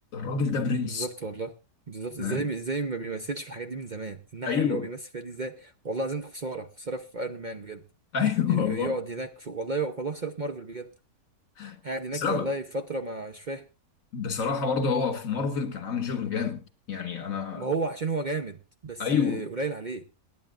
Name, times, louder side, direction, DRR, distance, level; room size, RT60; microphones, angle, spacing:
voice 1, 0.1-1.1 2.2-2.5 4.5-4.9 8.1-9.0 11.6-11.8 12.1-12.5 14.1-17.7 19.0-19.4, left 6 dB, 55° left, 1.9 m, -28 dB
voice 2, 0.8-1.5 1.9-7.8 8.5-10.9 11.8-13.6 17.6-20.0, right 3 dB, 45° right, 0.6 m, -33 dB
27.0 x 11.0 x 2.4 m
omnidirectional pair, 1.8 m